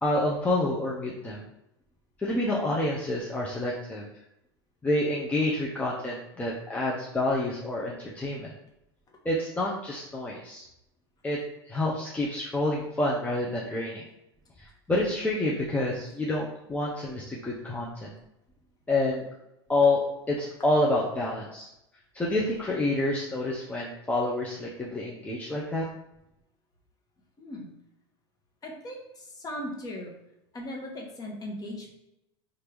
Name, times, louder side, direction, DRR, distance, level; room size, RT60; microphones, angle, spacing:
voice 1, 0.0-1.4 2.2-4.0 4.8-8.5 9.2-10.6 11.2-11.4 11.7-14.0 14.6-18.1 18.9-19.3 19.7-21.7 22.1-25.9, left 2 dB, 10° left, -4 dB, 0.6 m, -28 dB
voice 2, 27.4-27.7 28.6-30.1 30.5-31.9, left 1 dB, 25° left, 0 dB, 1.1 m, -38 dB
4.3 x 2.6 x 3.4 m, 0.84 s
hypercardioid pair, 85°, 14 cm